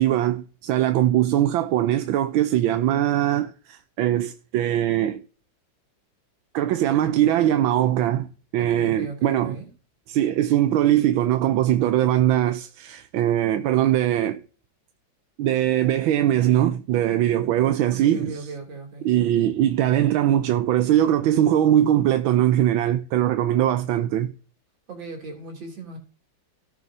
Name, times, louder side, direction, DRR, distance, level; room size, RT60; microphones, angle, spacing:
voice 1, 0.0-5.2 6.5-8.3 8.5-9.6 10.1-14.4 15.4-18.3 19.0-24.3, right 12 dB, 90° right, 1.5 m, -21 dB
voice 2, 8.6-9.7 17.9-19.1 24.9-26.0, right 3 dB, 70° right, 3.6 m, -37 dB
17.5 x 6.8 x 2.6 m
omnidirectional pair, 2.1 m